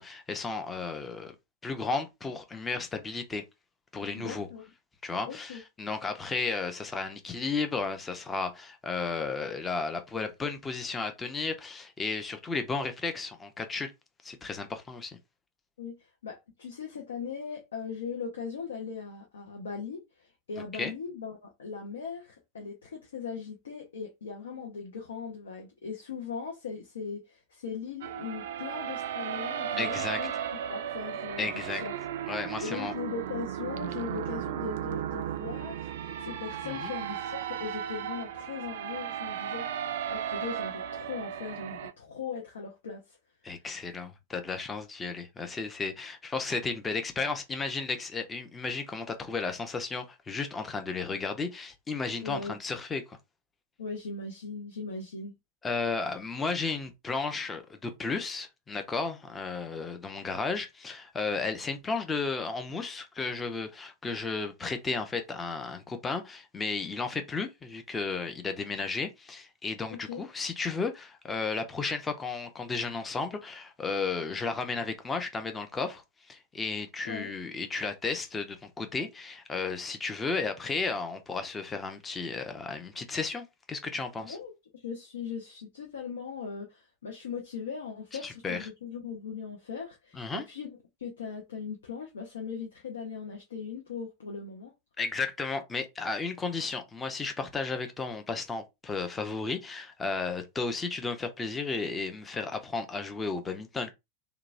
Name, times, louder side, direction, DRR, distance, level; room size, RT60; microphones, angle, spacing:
voice 1, 0.0-1.3 1.6-3.4 3.9-4.5 5.0-13.9 14.2-15.2 20.7-20.9 29.8-30.2 31.4-31.8 32.3-32.9 36.6-36.9 43.4-53.2 55.6-84.4 88.2-88.7 90.1-90.4 95.0-103.9, left 4 dB, 15° left, 0.5 m, -33 dB
voice 2, 4.1-4.6 5.3-5.6 15.8-30.3 30.7-31.5 31.8-31.9 32.6-35.9 36.2-43.2 52.2-52.6 53.8-55.3 69.9-70.2 77.0-77.3 84.2-90.7 91.0-94.7, left 5 dB, 65° left, 0.6 m, -39 dB
sound 1, 28.0-41.9, right 10 dB, 55° right, 0.3 m, -35 dB
2.9 x 2.2 x 2.5 m
figure-of-eight pair, 90°, 0 cm